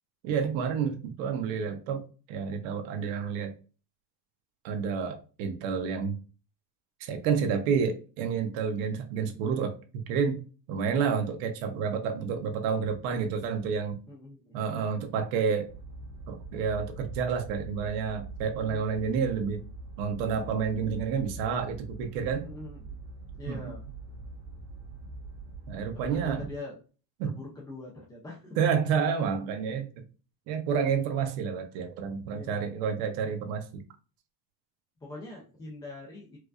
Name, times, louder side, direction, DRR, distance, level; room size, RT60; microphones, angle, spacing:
voice 1, 0.2-3.5 4.6-6.2 7.0-9.7 10.1-10.4 10.7-14.0 14.5-15.7 16.3-19.6 20.0-22.5 23.5-23.6 25.7-26.5 27.2-27.4 28.6-29.9 30.5-33.8, right 6 dB, 75° right, 0.9 m, -29 dB
voice 2, 14.1-14.6 18.5-19.1 22.4-23.0 23.4-23.8 25.9-26.8 27.2-28.8 32.3-32.7 35.0-36.4, left 2 dB, 10° left, 0.3 m, -43 dB
sound 1, 15.7-26.5, right 2 dB, 35° right, 1.1 m, -43 dB
4.6 x 2.4 x 2.3 m
cardioid pair, 170°, 45 cm